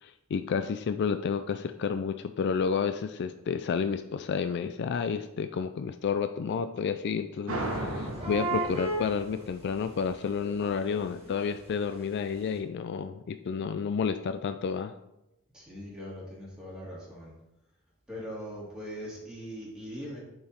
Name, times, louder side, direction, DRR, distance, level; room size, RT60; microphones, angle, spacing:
voice 1, 0.0-14.9, left 6 dB, 55° left, 10 dB, 0.3 m, -30 dB
sound 1, 7.5-10.8, right 1 dB, 75° right, 1.2 m, -36 dB
sound 2, 7.7-7.8 8.1-9.9 10.2-12.2 12.5-12.6, right 2 dB, 30° right, 2.0 m, -35 dB
voice 2, 15.5-17.3 18.1-20.2, equal, 5° right, -7 dB, 2.7 m, -41 dB
8.3 x 4.7 x 4.3 m, 0.90 s
head